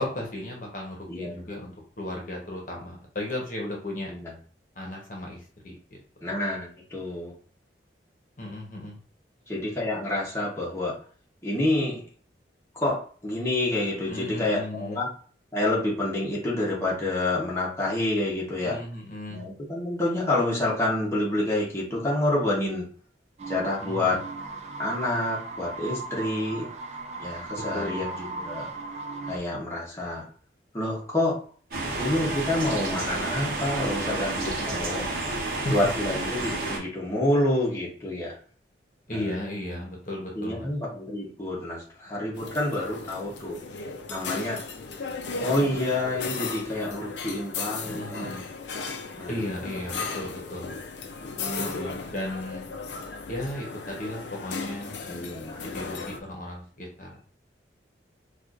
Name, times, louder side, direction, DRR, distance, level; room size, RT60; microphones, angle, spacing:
voice 1, 0.0-4.1 4.8-6.0 6.2-6.3 8.4-9.0 14.1-15.0 18.6-19.4 23.8-24.2 27.7-28.1 35.5-35.8 39.1-40.7 47.8-48.5 49.3-50.8 51.6-52.7 53.3-55.0 55.6-57.3, left 1 dB, 45° left, -1 dB, 0.9 m, -35 dB
voice 2, 1.1-1.4 4.1-4.3 6.2-7.3 9.5-10.9 11.4-12.0 12.7-15.1 15.5-18.8 19.3-22.9 23.5-24.2 24.8-26.7 27.2-28.7 29.3-30.2 30.7-31.4 32.0-35.1 35.7-38.4 39.1-39.3 40.3-43.6 44.1-44.6 45.4-48.3 49.2-49.5 51.2-52.0 55.0-55.7, left 1 dB, 15° left, -5 dB, 0.9 m, -28 dB
sound 1, 23.4-29.4, right 3 dB, 35° right, 0.4 m, -37 dB
sound 2, 31.7-36.8, right 2 dB, 55° right, 1.0 m, -30 dB
sound 3, 42.3-56.2, left 4 dB, 75° left, 0.5 m, -36 dB
4.3 x 2.4 x 2.4 m, 0.43 s
head